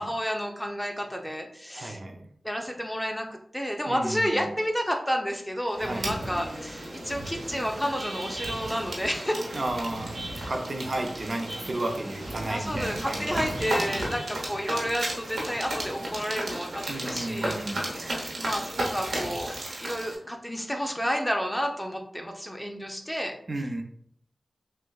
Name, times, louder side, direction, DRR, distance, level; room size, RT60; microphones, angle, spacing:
voice 1, 0.0-2.0 2.4-3.3 3.5-9.4 10.4-10.5 12.5-17.6 18.4-19.5 19.8-23.3, equal, 5° left, 2 dB, 0.6 m, -30 dB
voice 2, 1.7-2.3 3.9-4.5 5.8-6.1 9.5-10.2 10.5-14.0 16.9-17.9 23.5-23.8, right 1 dB, 50° right, 3 dB, 0.5 m, -33 dB
sound 1, 5.7-20.2, right 1 dB, 85° right, 0.9 m, -34 dB
6.0 x 2.2 x 2.3 m, 0.67 s
wide cardioid pair, 60°, 0 cm